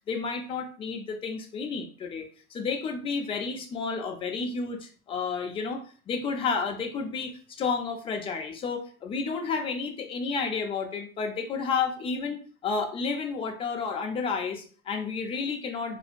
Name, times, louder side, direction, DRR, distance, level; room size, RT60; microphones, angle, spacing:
voice 1, 0.1-16.0, left 5 dB, 15° left, 3 dB, 0.4 m, -31 dB
4.2 x 2.5 x 2.4 m, 0.42 s
hypercardioid pair, 90°, 44 cm